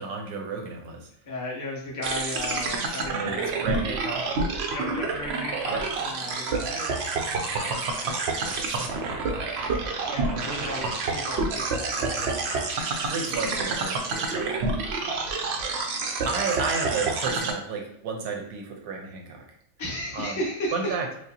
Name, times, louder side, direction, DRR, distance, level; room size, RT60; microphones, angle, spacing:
voice 1, 0.0-1.1 3.1-4.2 5.7-5.8 8.4-9.4 10.3-10.5 12.0-12.2 13.1-14.6 16.2-19.4 20.1-20.3 20.7-21.1, right 4 dB, 90° right, 1 dB, 1.3 m, -32 dB
voice 2, 1.2-4.0 4.7-8.4 9.1-9.2 9.8-13.7 19.8-21.0, left 1 dB, 15° left, -5 dB, 0.8 m, -36 dB
sound 1, 2.0-17.5, right 3 dB, 65° right, 0.6 m, -28 dB
4.8 x 2.1 x 2.8 m, 0.71 s
omnidirectional pair, 1.6 m